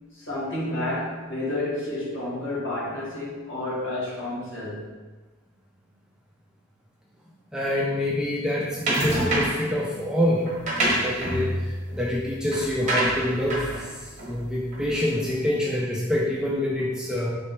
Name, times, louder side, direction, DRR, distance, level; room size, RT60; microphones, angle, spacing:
voice 1, 0.1-4.8, left 1 dB, 60° left, -7 dB, 1.4 m, -30 dB
voice 2, 7.5-10.4 10.8-17.3, left 1 dB, 5° right, -5 dB, 0.4 m, -26 dB
sound 1, 8.9-9.7 10.5-15.2, right 1 dB, 35° right, 0.9 m, -27 dB
4.3 x 3.0 x 3.3 m, 1.3 s
head